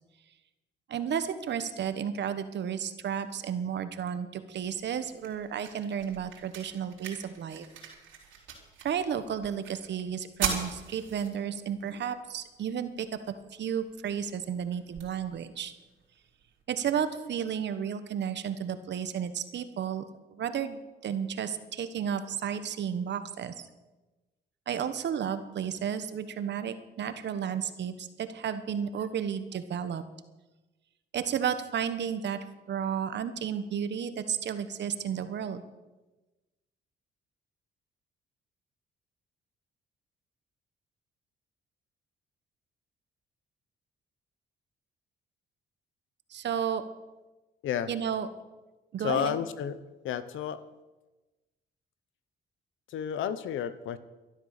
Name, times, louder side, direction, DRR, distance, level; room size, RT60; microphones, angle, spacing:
voice 1, 0.9-7.7 8.8-15.7 16.7-20.0 20.3-23.7 24.7-30.0 31.1-32.4 32.7-35.6 46.3-46.8 47.9-48.3 48.9-49.4, right 8 dB, 60° right, 11 dB, 1.2 m, -32 dB
sound 1, 4.6-16.6, right 7 dB, 80° right, 3.7 m, -42 dB
voice 2, 49.0-49.8 50.0-50.7 52.9-54.0, left 9 dB, 80° left, 14 dB, 1.0 m, -31 dB
12.5 x 11.5 x 6.7 m, 1.1 s
cardioid pair, 90°, 20 cm